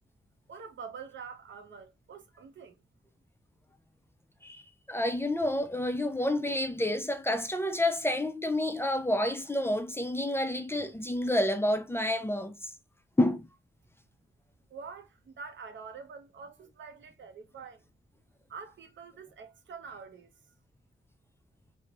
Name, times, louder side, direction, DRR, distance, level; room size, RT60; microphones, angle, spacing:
voice 1, 0.5-2.8 14.7-17.8 18.5-20.3, right 5 dB, 70° right, 0.6 m, -46 dB
voice 2, 4.9-12.7 13.2-13.5, left 1 dB, 10° left, 0.4 m, -29 dB
3.1 x 2.1 x 2.4 m
cardioid pair, 55°, 20 cm